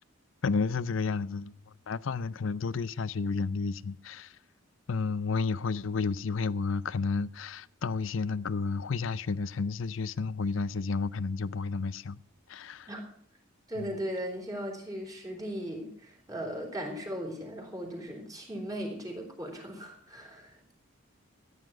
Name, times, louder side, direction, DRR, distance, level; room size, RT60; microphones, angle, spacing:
voice 1, 0.4-1.5 1.9-4.4 4.9-12.2 12.5-12.9 13.8-13.9, left 4 dB, 65° left, 0.5 m, -31 dB
voice 2, 13.7-20.6, equal, 15° right, 3.8 m, -37 dB
14.5 x 9.8 x 6.1 m
head